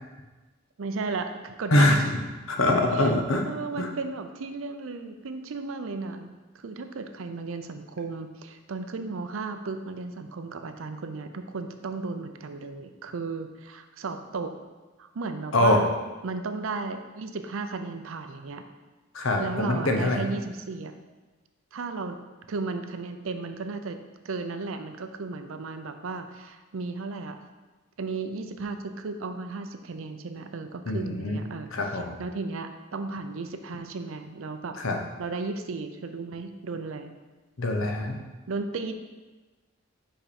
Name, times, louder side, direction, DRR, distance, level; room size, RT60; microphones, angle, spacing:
voice 1, 0.8-2.1 2.9-3.1 3.4-14.5 15.0-15.9 16.2-18.6 19.4-20.9 21.7-22.2 22.5-24.0 24.2-27.4 28.0-31.7 32.2-34.7 35.2-37.1 38.5-38.9, right 3 dB, 75° right, 8 dB, 0.5 m, -34 dB
voice 2, 2.5-3.5 3.8-3.9 15.5-15.8 19.1-20.2 30.9-31.4 31.7-32.2 34.8-35.0 37.6-38.2, left 1 dB, 75° left, 3 dB, 0.9 m, -23 dB
5.6 x 5.1 x 4.2 m, 1.2 s
head